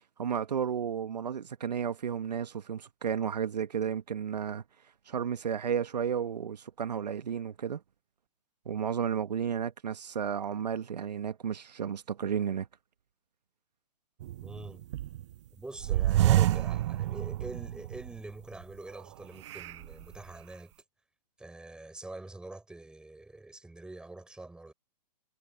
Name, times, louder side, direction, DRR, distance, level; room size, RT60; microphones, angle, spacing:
voice 1, 0.0-4.6 5.1-7.8 8.6-12.7, right 7 dB, 75° right, 1.3 m, -33 dB
sound 1, 14.2-15.3 15.8-18.2 18.6-18.7 19.4-20.2, right 14 dB, 45° right, 0.6 m, -28 dB
voice 2, 14.4-14.8 15.5-20.7 21.4-24.7, right 2 dB, 5° right, 5.2 m, -45 dB
hypercardioid pair, 135°, 21 cm